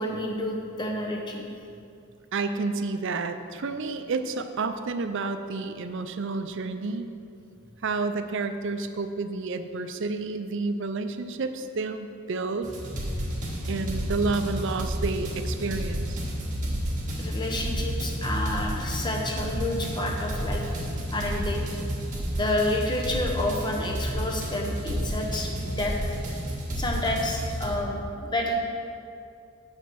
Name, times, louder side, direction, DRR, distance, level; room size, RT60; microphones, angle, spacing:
voice 1, 0.0-1.5 17.2-20.8 21.1-21.6 22.3-26.2 26.7-28.6, left 1 dB, 20° left, 0 dB, 0.9 m, -29 dB
voice 2, 2.3-7.1 7.8-12.7 13.7-16.2, right 3 dB, 55° right, 8 dB, 0.5 m, -30 dB
sound 1, 12.6-27.7, equal, 35° right, 1.6 m, -31 dB
7.5 x 6.2 x 6.1 m, 2.5 s
head